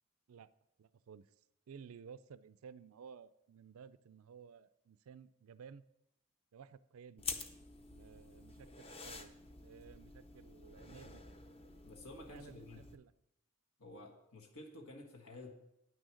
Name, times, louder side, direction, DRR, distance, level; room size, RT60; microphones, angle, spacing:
voice 1, 0.8-5.8 6.5-7.3 7.9-9.3 9.6-11.2 12.3-13.1, right 6 dB, 80° right, 16 dB, 0.4 m, -55 dB
sound 1, 7.2-12.9, left 4 dB, 25° left, 0.6 m, -49 dB
voice 2, 11.8-12.8 13.8-15.5, left 2 dB, 90° left, 1 dB, 1.5 m, -52 dB
9.0 x 6.3 x 6.3 m, 0.83 s
head